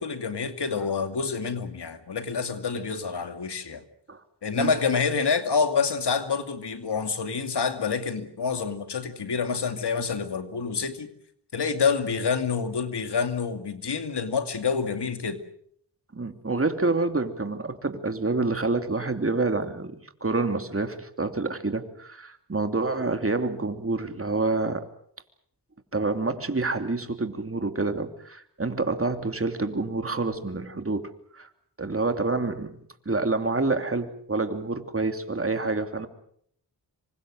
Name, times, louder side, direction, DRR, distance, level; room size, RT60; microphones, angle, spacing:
voice 1, 0.0-3.8 4.4-11.1 11.5-15.4, left 5 dB, 75° left, 2.5 m, -27 dB
voice 2, 16.1-24.9 25.9-31.5 31.8-32.8 33.0-36.1, right 3 dB, 35° right, 2.9 m, -27 dB
27.0 x 24.5 x 6.4 m
cardioid pair, 55°, 41 cm